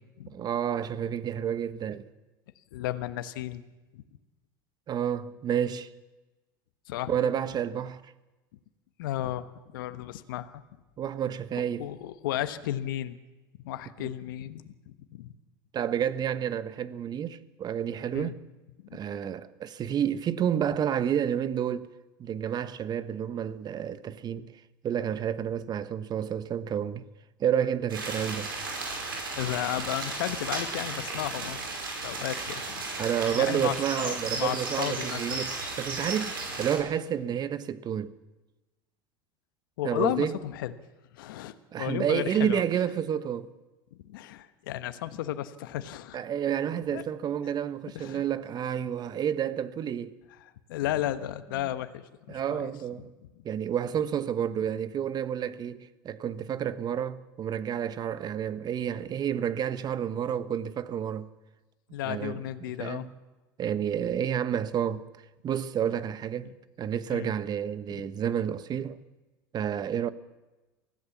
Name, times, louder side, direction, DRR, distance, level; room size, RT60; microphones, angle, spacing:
voice 1, 0.3-2.1 4.9-5.9 7.1-8.0 11.0-11.9 14.0-14.1 15.7-18.4 18.9-21.9 22.2-24.5 24.8-27.0 27.4-28.5 32.9-38.1 39.8-40.4 41.7-43.5 46.1-50.1 51.6-51.7 52.3-53.1 53.4-61.3 62.0-63.1 63.6-65.0 65.4-66.5 66.8-69.0 69.5-70.1, right 9 dB, 35° right, 1.2 m, -30 dB
voice 2, 2.7-3.6 3.9-4.0 6.9-7.1 9.0-10.6 11.8-13.2 13.6-14.7 15.1-15.3 18.1-18.3 18.9-19.0 29.3-31.6 32.0-32.8 33.3-33.8 34.0-35.4 39.8-40.7 41.1-42.6 44.0-46.2 46.9-47.0 47.9-48.2 50.7-52.7 61.9-63.1 67.1-67.3, left 13 dB, 75° left, 1.2 m, -33 dB
sound 1, 27.9-36.8, right 3 dB, 90° right, 5.3 m, -35 dB
24.0 x 16.0 x 7.3 m
hypercardioid pair, 90°, 11 cm